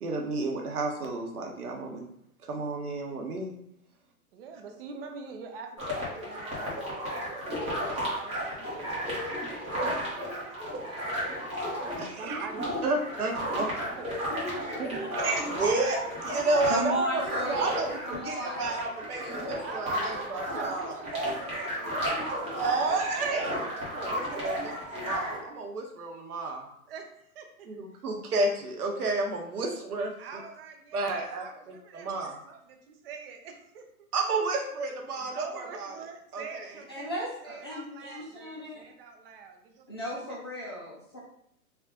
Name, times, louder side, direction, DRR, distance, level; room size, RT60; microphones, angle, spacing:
voice 1, 0.0-2.0 2.4-3.6 12.0-12.4 12.8-13.6 14.8-18.0 18.3-21.0 22.5-24.5 24.9-26.7 27.7-30.4 30.9-32.4 34.1-35.9 36.3-36.7, right 3 dB, 80° right, 2 dB, 1.0 m, -31 dB
voice 2, 4.3-11.4 11.8-12.8 13.4-15.6 19.6-23.5 24.3-24.5 26.9-27.7 30.2-34.1 35.2-40.2, right 5 dB, 40° right, 4 dB, 0.6 m, -45 dB
sound 1, 5.8-25.4, equal, 15° right, 1.0 m, -33 dB
voice 3, 16.7-18.6 36.9-38.8 39.9-41.2, equal, 20° left, -8 dB, 0.3 m, -35 dB
3.5 x 2.4 x 3.7 m, 0.74 s
hypercardioid pair, 140°, 44 cm